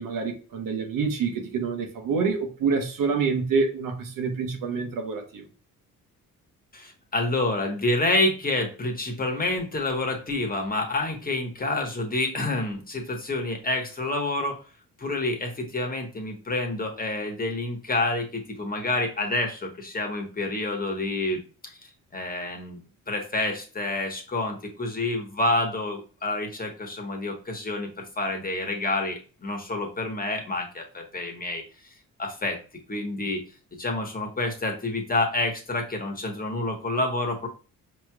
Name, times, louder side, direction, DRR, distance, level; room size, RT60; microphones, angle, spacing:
voice 1, 0.0-5.4, right 5 dB, 75° right, 1.0 m, -27 dB
voice 2, 6.7-14.6 15.0-21.4 21.8-22.8 23.1-31.6 32.2-32.6 32.9-33.4 33.7-37.5, left 2 dB, 25° left, 1.2 m, -28 dB
4.9 x 3.0 x 2.3 m
cardioid pair, 80°, 34 cm